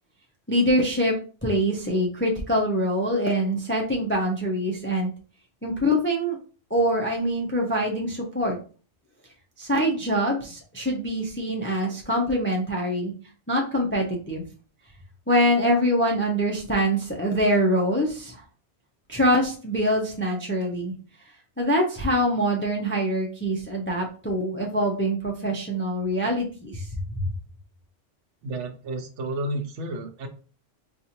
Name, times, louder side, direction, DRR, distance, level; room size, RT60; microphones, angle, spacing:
voice 1, 0.5-1.1 1.4-5.1 5.6-6.4 6.7-8.6 9.6-13.1 13.5-14.4 15.3-18.4 19.1-20.9 21.6-26.9, equal, 20° left, 1 dB, 0.3 m, -24 dB
voice 2, 28.4-30.3, right 1 dB, 75° right, 6 dB, 0.9 m, -31 dB
4.0 x 2.4 x 2.8 m, 0.38 s
omnidirectional pair, 1.3 m